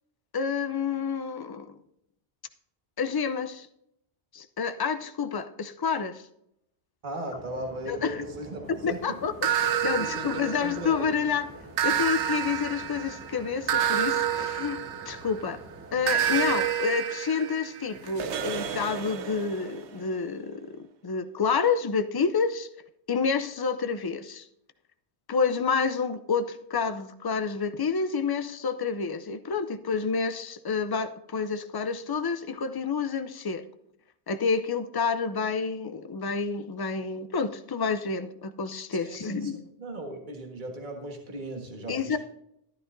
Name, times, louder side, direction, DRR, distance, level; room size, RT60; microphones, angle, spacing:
voice 1, 0.3-1.7 3.0-3.7 4.3-6.2 7.9-8.2 8.7-11.5 11.8-15.6 15.9-22.7 23.1-24.5 25.3-33.7 34.3-39.6 41.9-42.2, left 5 dB, 35° left, 0.4 m, -29 dB
voice 2, 7.0-9.0 9.8-11.1 39.0-39.5 39.8-42.2, right 1 dB, 45° right, 1.7 m, -37 dB
sound 1, 7.3-16.7, right 2 dB, 15° right, 0.6 m, -47 dB
sound 2, 9.4-11.1 11.8-15.5 16.1-19.8, right 9 dB, 80° right, 1.0 m, -29 dB
12.0 x 11.0 x 2.6 m
omnidirectional pair, 1.2 m